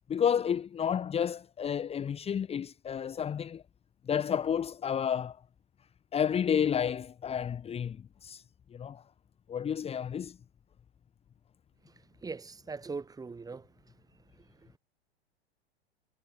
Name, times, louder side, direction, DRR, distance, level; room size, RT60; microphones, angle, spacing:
voice 1, 0.1-3.6 4.1-5.4 6.1-8.4 8.7-9.0 9.5-10.4, left 8 dB, 20° left, 2.4 m, -31 dB
voice 2, 12.7-13.6, right 4 dB, 10° right, 5.1 m, -39 dB
figure-of-eight pair, 95°, 32 cm